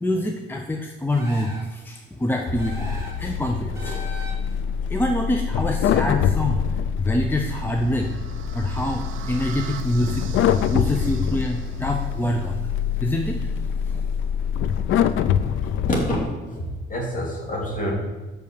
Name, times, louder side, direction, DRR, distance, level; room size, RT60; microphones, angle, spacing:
voice 1, 0.0-2.9 3.2-4.0 4.9-8.1 8.5-10.3 10.7-12.6 13.0-13.5 13.9-14.0, left 1 dB, 10° left, 3 dB, 0.7 m, -25 dB
sound 1, 1.1-1.8 2.6-3.3 3.7-4.6, left 1 dB, 15° right, 2.6 m, -39 dB
sound 2, 2.5-16.2, left 8 dB, 80° left, 0.5 m, -25 dB
sound 3, 7.2-12.3, right 9 dB, 85° right, 0.7 m, -41 dB
voice 2, 15.6-17.9, equal, 40° left, -2 dB, 2.8 m, -28 dB
6.2 x 5.5 x 6.8 m, 1.2 s
cardioid pair, 90°, 20 cm